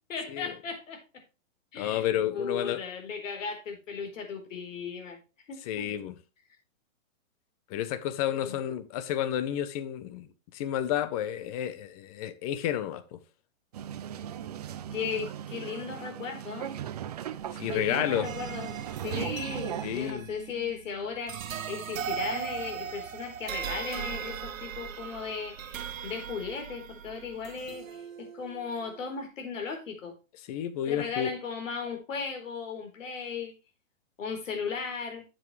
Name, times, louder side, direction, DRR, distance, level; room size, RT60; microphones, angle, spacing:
voice 1, 0.1-1.0 1.7-2.1 2.3-5.2 5.5-5.9 8.4-8.6 14.9-16.7 17.7-18.8 19.0-30.1 30.9-33.5 34.2-35.2, left 5 dB, 65° left, 4.3 m, -36 dB
voice 2, 1.8-2.8 5.7-6.1 7.7-13.2 17.6-18.3 19.8-20.3 30.5-31.3, left 11 dB, 25° left, 0.9 m, -31 dB
sound 1, 13.7-20.1, right 10 dB, 30° right, 0.4 m, -37 dB
sound 2, 18.2-29.2, right 8 dB, 70° right, 1.3 m, -39 dB
10.5 x 7.7 x 3.3 m
hypercardioid pair, 150°, 41 cm